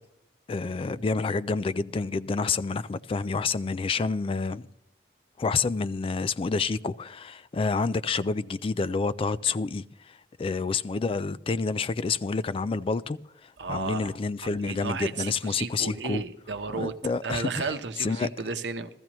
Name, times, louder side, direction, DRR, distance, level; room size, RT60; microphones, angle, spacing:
voice 1, 0.5-4.7 5.4-16.2 16.7-18.3, left 4 dB, 30° left, 0.3 m, -29 dB
voice 2, 13.6-14.2 14.4-16.9 17.2-18.9, right 4 dB, 90° right, 0.8 m, -33 dB
15.5 x 14.0 x 3.0 m
head